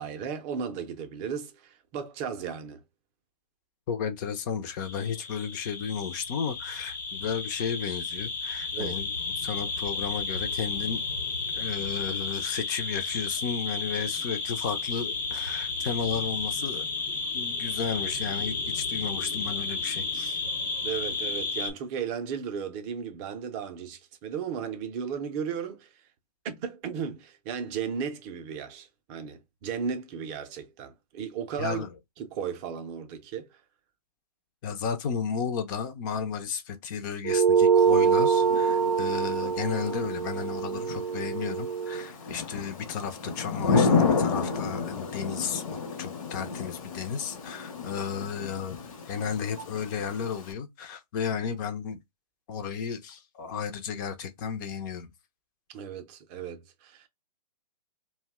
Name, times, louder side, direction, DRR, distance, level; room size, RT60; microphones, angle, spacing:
voice 1, 0.0-2.8 8.7-9.0 20.8-25.9 26.4-31.8 32.2-33.6 55.7-57.1, right 7 dB, 25° right, 0.5 m, -35 dB
voice 2, 3.9-11.0 11.5-16.9 17.3-20.4 31.6-31.9 34.6-45.6 46.0-48.8 49.1-52.0 52.5-55.1, left 7 dB, 30° left, 0.5 m, -33 dB
sound 1, 4.8-21.7, left 4 dB, 85° left, 0.9 m, -32 dB
sound 2, 37.2-42.1, right 7 dB, 80° right, 0.4 m, -24 dB
Thunder / Rain, 37.8-50.5, left 4 dB, 55° left, 0.8 m, -31 dB
2.6 x 2.1 x 3.4 m
hypercardioid pair, 135°, 20 cm